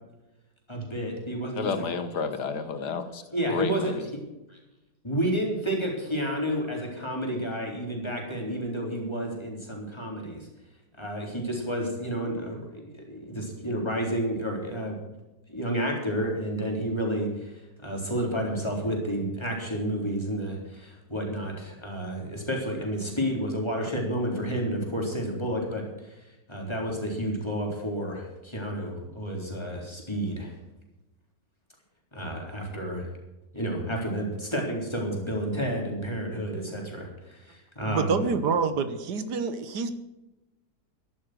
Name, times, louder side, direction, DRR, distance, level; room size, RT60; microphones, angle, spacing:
voice 1, 0.7-1.8 3.3-3.9 5.0-10.5 11.0-15.0 15.5-26.2 26.5-30.5 32.1-33.1 33.5-38.2, equal, 15° left, -1 dB, 4.0 m, -30 dB
voice 2, 1.5-3.2 3.5-3.9, left 5 dB, 75° left, 10 dB, 1.8 m, -30 dB
voice 3, 37.9-39.9, right 5 dB, 75° right, 11 dB, 1.7 m, -27 dB
13.5 x 11.5 x 6.4 m, 1.0 s
omnidirectional pair, 1.8 m